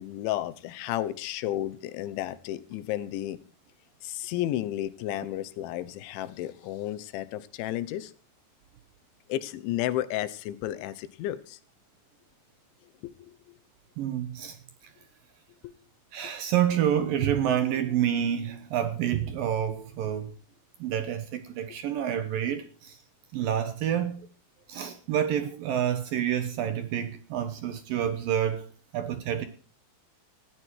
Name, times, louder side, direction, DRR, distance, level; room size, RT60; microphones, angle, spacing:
voice 1, 0.0-3.4 4.0-8.1 9.3-11.6 13.0-13.6 15.6-15.7, left 13 dB, 90° left, 3.4 m, -32 dB
voice 2, 14.0-14.6 16.1-20.3 20.8-23.0 23.3-24.3 24.7-28.7 28.9-29.5, right 10 dB, 70° right, 2.3 m, -28 dB
19.0 x 14.5 x 4.7 m
omnidirectional pair, 5.2 m